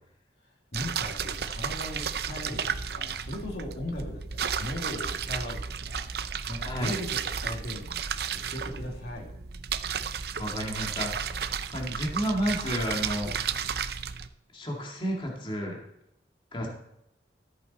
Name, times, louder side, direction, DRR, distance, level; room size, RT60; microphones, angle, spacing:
voice 1, 0.7-6.0 6.5-8.1 8.3-9.3 16.6-16.7, left 1 dB, 60° left, 0 dB, 2.5 m, -38 dB
sound 1, 0.7-14.3, right 7 dB, 60° right, 0.6 m, -33 dB
voice 2, 6.6-7.0 10.4-11.1 11.7-13.3 14.5-15.8 16.5-16.7, equal, 30° left, -1 dB, 2.1 m, -31 dB
14.0 x 8.4 x 4.2 m, 0.82 s
head